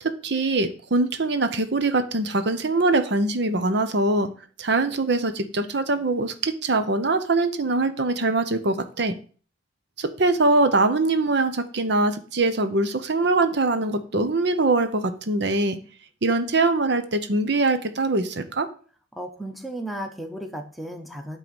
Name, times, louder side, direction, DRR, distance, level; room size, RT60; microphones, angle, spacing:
voice 1, 0.0-4.3 4.6-9.1 10.0-15.8 16.2-18.7, right 2 dB, 65° right, 9 dB, 0.8 m, -23 dB
voice 2, 19.1-21.4, right 1 dB, ahead, 4 dB, 1.0 m, -34 dB
9.1 x 3.8 x 6.9 m, 0.40 s
head